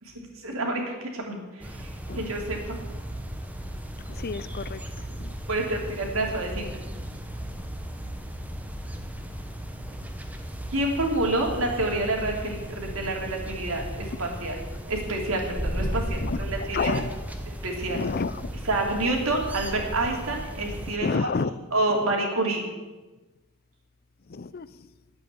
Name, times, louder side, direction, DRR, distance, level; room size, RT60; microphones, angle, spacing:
voice 1, 0.0-2.8 5.5-6.6 10.7-14.6 14.9-17.0 17.6-18.0 18.6-21.3 21.7-22.6, right 2 dB, 75° right, 1 dB, 3.0 m, -28 dB
sound 1, 1.6-21.0, equal, 5° right, 1.1 m, -35 dB
voice 2, 4.2-4.8 5.2-5.3 16.2-16.4 16.7-17.1 17.9-18.3 21.0-21.5 24.3-24.7, left 4 dB, 45° left, 16 dB, 0.5 m, -28 dB
10.5 x 8.6 x 9.5 m, 1.2 s
head